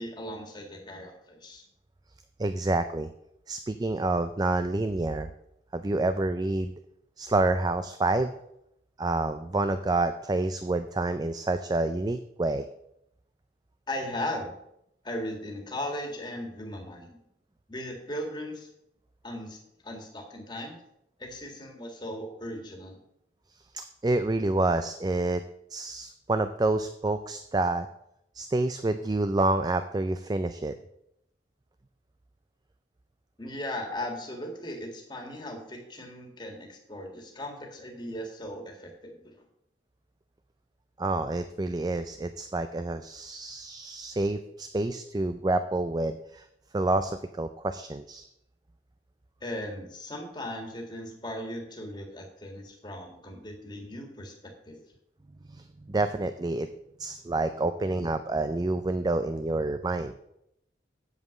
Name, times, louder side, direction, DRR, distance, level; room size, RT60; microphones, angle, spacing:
voice 1, 0.0-1.7 13.9-14.5 15.0-17.2 17.7-18.7 19.2-19.6 19.8-20.8 21.2-23.0 33.4-39.3 49.4-54.3 54.7-54.8, left 1 dB, 25° left, 2 dB, 1.8 m, -37 dB
voice 2, 2.4-3.1 3.5-5.3 5.7-6.7 7.2-8.3 9.0-12.7 23.7-25.4 25.7-27.9 28.3-30.7 41.0-46.5 46.7-48.3 55.5-56.7 57.0-60.1, right 2 dB, 20° right, 10 dB, 0.3 m, -28 dB
8.2 x 7.3 x 6.5 m, 0.79 s
head